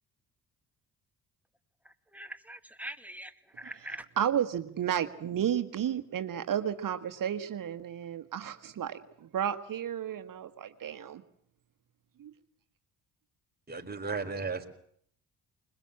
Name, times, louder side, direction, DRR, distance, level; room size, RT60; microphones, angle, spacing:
voice 1, 1.9-4.0, right 1 dB, 5° right, 8 dB, 2.0 m, -43 dB
voice 2, 4.2-11.2 12.2-12.3, right 9 dB, 60° right, 8 dB, 1.5 m, -32 dB
voice 3, 13.7-14.7, right 4 dB, 25° right, 3 dB, 4.3 m, -34 dB
21.5 x 21.0 x 8.6 m, 0.66 s
supercardioid pair, 65°, 37 cm